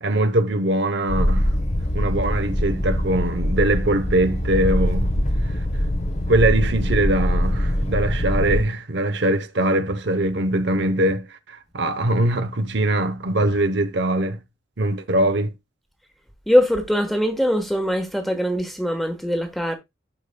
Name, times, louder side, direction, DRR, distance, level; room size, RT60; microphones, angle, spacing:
voice 1, 0.0-1.5 1.9-5.1 5.4-5.5 6.3-14.4 14.8-15.5, right 1 dB, 60° right, 0.8 m, -22 dB
sound 1, 1.1-8.6, equal, 35° left, 1.1 m, -23 dB
voice 2, 16.5-19.8, equal, ahead, 1.3 m, -21 dB
11.5 x 5.1 x 2.2 m
head